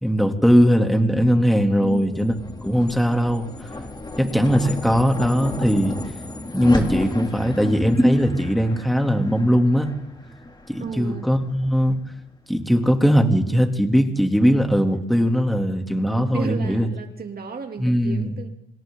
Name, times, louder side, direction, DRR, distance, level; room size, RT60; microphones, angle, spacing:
voice 1, 0.0-2.3 2.6-3.5 4.2-6.0 6.5-9.9 10.7-11.9 12.5-16.9 17.8-18.3, equal, ahead, 3 dB, 2.9 m, -19 dB
sound 1, 1.7-12.2, left 2 dB, 20° left, 3.0 m, -32 dB
voice 2, 1.8-2.3 4.2-4.6 10.8-11.3 14.9-15.4 15.9-18.5, right 5 dB, 50° right, 4 dB, 2.9 m, -35 dB
26.5 x 26.0 x 3.9 m, 0.87 s
supercardioid pair, 65°, 20 cm